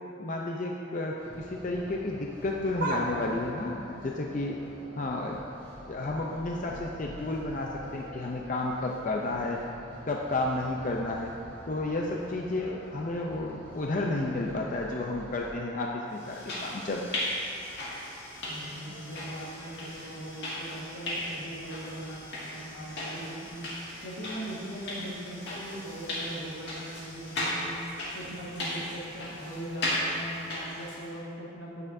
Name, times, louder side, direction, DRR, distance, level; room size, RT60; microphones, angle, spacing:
voice 1, 0.2-4.6 5.0-5.4 5.9-9.6 10.0-11.3 11.7-17.0, left 2 dB, 40° left, -1 dB, 0.5 m, -32 dB
sound 1, 1.2-15.5, equal, 15° left, 2.3 m, -48 dB
sound 2, 2.8-5.4 5.8-6.2 6.5-10.5 10.8-10.9 11.9-12.0, right 1 dB, 45° right, 0.8 m, -41 dB
sound 3, 16.2-31.1, left 1 dB, 55° left, 2.1 m, -37 dB
voice 2, 18.5-23.7 24.0-27.8 28.1-31.9, right 1 dB, 80° left, -4 dB, 1.8 m, -40 dB
15.5 x 6.7 x 2.7 m, 2.7 s
head